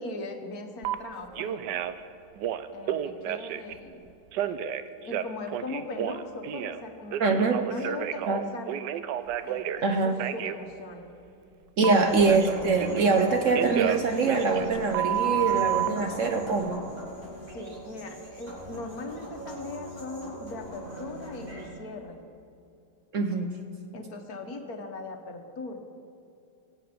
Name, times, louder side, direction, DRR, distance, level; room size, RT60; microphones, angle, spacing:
voice 1, 0.0-1.9 2.7-4.0 5.0-8.7 9.4-11.1 11.9-12.2 17.5-22.2 23.9-25.8, left 3 dB, 60° left, 5 dB, 1.6 m, -39 dB
Telephone, 0.8-0.9 1.3-2.0 2.4-3.7 4.3-6.8 7.1-9.8 10.2-10.6 11.8-13.2 13.5-15.9, right 11 dB, 80° right, 1.2 m, -30 dB
voice 2, 7.2-7.6 8.3-8.4 9.8-10.2 11.8-16.8 23.1-23.5, right 4 dB, 55° right, 5 dB, 1.0 m, -24 dB
sound 1, 11.8-21.7, equal, 25° right, 4.5 m, -39 dB
22.5 x 7.9 x 5.1 m, 2.6 s
omnidirectional pair, 1.9 m